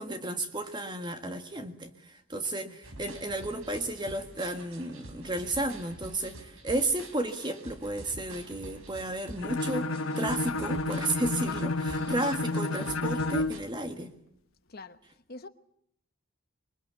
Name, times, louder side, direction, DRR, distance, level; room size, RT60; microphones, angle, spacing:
voice 1, 0.0-14.1, right 1 dB, 20° right, 1.7 m, -33 dB
sound 1, 2.8-13.6, right 2 dB, 75° right, 4.3 m, -47 dB
Bowed string instrument, 9.4-13.6, left 2 dB, 75° left, 1.2 m, -31 dB
voice 2, 14.7-15.0 15.3-15.5, left 2 dB, 45° left, 1.0 m, -44 dB
24.5 x 22.0 x 8.3 m
head